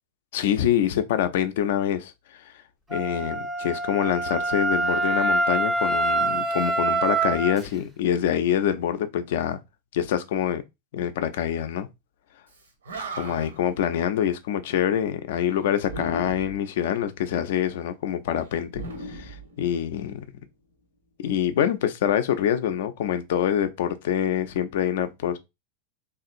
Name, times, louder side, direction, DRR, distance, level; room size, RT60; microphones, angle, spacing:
voice 1, 0.3-2.4 2.9-9.6 9.9-10.6 10.9-11.9 13.1-20.2 21.2-25.4, left 10 dB, 55° left, 0.4 m, -25 dB
Wind instrument woodwind instrument, 2.9-7.6, right 2 dB, 10° right, 0.4 m, -25 dB
Animal, 12.5-12.6 12.8-13.7 15.8-16.7 18.7-20.0, right 1 dB, 70° right, 0.6 m, -37 dB
2.9 x 2.4 x 2.5 m
figure-of-eight pair, 90°, 0 cm